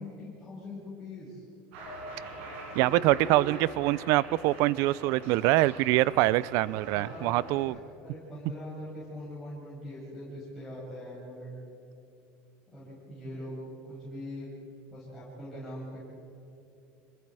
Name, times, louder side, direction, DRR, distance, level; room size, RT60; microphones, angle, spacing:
voice 1, 0.0-1.4 2.8-3.4 6.9-11.5 12.7-13.6 13.9-14.5 14.9-16.0, left 1 dB, ahead, -10 dB, 7.0 m, -42 dB
Cheering, 1.7-7.6, right 2 dB, 85° right, 6.3 m, -44 dB
voice 2, 2.7-7.8, right 17 dB, 65° right, 22 dB, 0.5 m, -24 dB
26.5 x 22.0 x 4.8 m, 2.8 s
cardioid pair, 140°, 6 cm